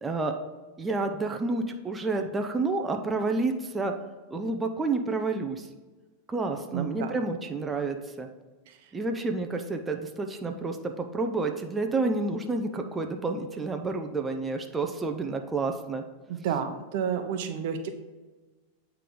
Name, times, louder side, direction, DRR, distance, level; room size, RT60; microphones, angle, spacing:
voice 1, 0.0-0.4 0.8-3.9 4.3-5.7 6.3-8.3 8.9-16.0, right 3 dB, 15° right, 4 dB, 0.6 m, -29 dB
voice 2, 6.7-7.1 16.3-17.9, right 7 dB, 65° right, 7 dB, 0.8 m, -30 dB
9.0 x 3.4 x 3.8 m, 1.2 s
hypercardioid pair, 120°, 0 cm